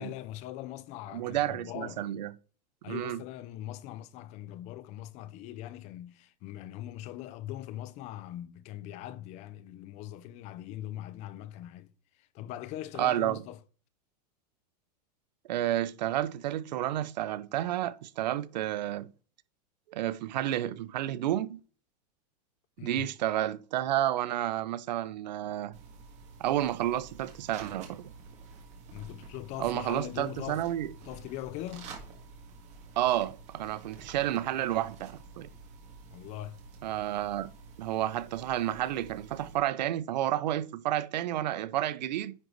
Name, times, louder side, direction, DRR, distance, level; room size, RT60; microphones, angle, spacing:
voice 1, 0.0-2.0 2.8-11.9 12.2-13.6 22.8-23.1 28.9-30.7 31.0-32.0 36.1-36.6, left 13 dB, 35° left, 0.5 m, -41 dB
voice 2, 1.1-2.3 2.9-3.2 13.0-13.4 15.5-19.1 19.9-21.6 22.8-25.8 26.4-28.1 29.6-30.9 33.0-35.5 36.8-37.5 37.8-42.3, right 13 dB, 85° right, 0.6 m, -31 dB
sound 1, 25.7-39.6, right 4 dB, 35° right, 1.8 m, -50 dB
9.7 x 3.9 x 3.1 m
supercardioid pair, 150°, 21 cm